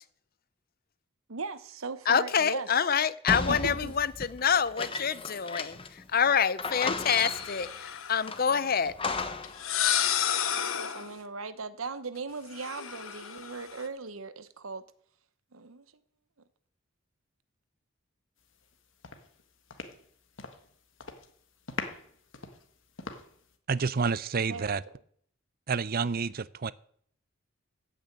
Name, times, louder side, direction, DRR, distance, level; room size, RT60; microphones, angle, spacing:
voice 1, 1.3-2.7 3.5-3.9 10.8-14.8 15.5-15.9 24.5-24.7, right 4 dB, 90° right, 1.0 m, -38 dB
voice 2, 2.1-8.9, left 7 dB, 45° left, 0.6 m, -27 dB
sound 1, 3.3-6.0 6.3-6.4 6.6-7.7 8.3-9.6, left 4 dB, 25° left, 1.0 m, -34 dB
sound 2, 7.0-8.3 9.4-11.1 12.5-13.9, left 9 dB, 85° left, 1.1 m, -31 dB
sound 3, 18.5-18.7 19.0-20.7 21.0-21.3 21.7-23.5, left 4 dB, 65° left, 1.7 m, -41 dB
voice 3, 23.7-24.8 25.7-26.7, right 5 dB, 45° right, 0.5 m, -29 dB
14.5 x 6.5 x 8.9 m
head